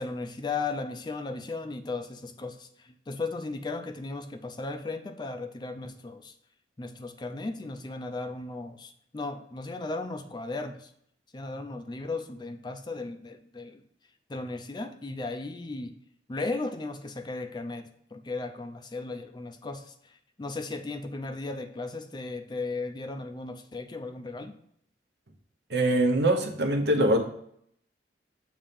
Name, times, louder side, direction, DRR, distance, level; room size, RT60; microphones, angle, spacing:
voice 1, 0.0-6.3 6.8-10.9 11.3-13.8 14.3-16.0 16.3-24.5, left 3 dB, 25° left, 8 dB, 0.4 m, -36 dB
voice 2, 25.7-27.2, right 1 dB, 70° right, 4 dB, 0.9 m, -23 dB
7.0 x 2.9 x 5.1 m, 0.69 s
head